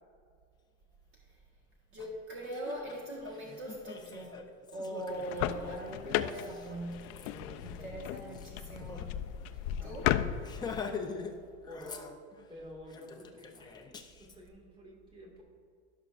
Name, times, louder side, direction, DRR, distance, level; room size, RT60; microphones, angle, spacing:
voice 1, 1.9-4.4 4.7-7.3 7.6-10.1, right 1 dB, 45° right, -2 dB, 1.5 m, -41 dB
Laughter, 2.0-2.1 2.4-9.1 9.4-9.5 9.8-10.0 10.4-11.3 11.6-12.5 12.9-14.4, left 5 dB, 15° left, 0.5 m, -44 dB
sound 1, 5.1-10.8, left 12 dB, 65° left, 0.5 m, -35 dB
voice 2, 7.3-8.5 9.8-9.9 11.2-12.2 12.5-15.4, left 1 dB, 15° right, -2 dB, 2.0 m, -51 dB
16.0 x 6.0 x 2.5 m, 2.4 s
supercardioid pair, 140°, 30 cm